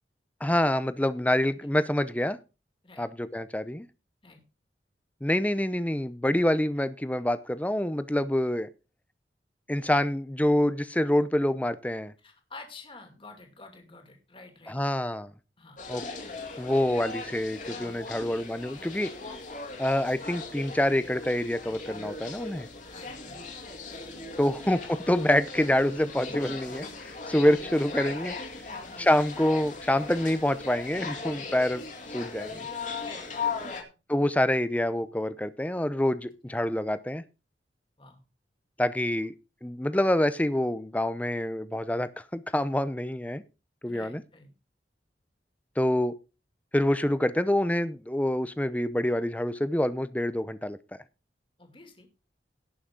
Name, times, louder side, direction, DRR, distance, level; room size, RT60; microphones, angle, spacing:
voice 1, 0.4-2.4 3.0-3.9 5.2-8.7 9.7-12.1 14.7-15.3 15.9-16.0 16.6-19.1 19.8-22.7 24.4-26.8 27.3-28.3 29.0-31.8 32.1-32.7 34.1-37.2 38.8-39.3 39.6-43.4 43.8-44.2 45.8-46.1 46.7-50.8, left 1 dB, 10° left, 14 dB, 0.6 m, -26 dB
voice 2, 12.2-15.0 15.6-15.8 18.1-18.3 18.7-18.9 22.8-24.1 24.5-24.6 26.3-26.6 28.0-28.1 28.7-29.0 30.9-31.6 33.0-33.9 36.5-36.6 38.0-38.2 43.9-44.5 51.6-52.1, left 3 dB, 30° left, 4 dB, 2.5 m, -50 dB
sound 1, 15.8-33.8, left 4 dB, 45° left, 2.3 m, -38 dB
17.5 x 6.4 x 3.7 m, 0.30 s
head